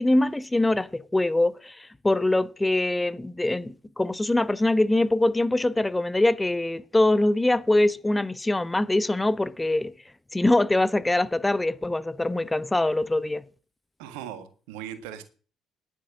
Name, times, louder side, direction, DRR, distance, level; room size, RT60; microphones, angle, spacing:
voice 1, 0.0-9.9 10.3-13.5, left 2 dB, 15° left, 0.9 m, -23 dB
voice 2, 14.0-15.2, right 10 dB, 75° right, 1.6 m, -38 dB
10.5 x 8.5 x 7.6 m
hypercardioid pair, 50°, 0 cm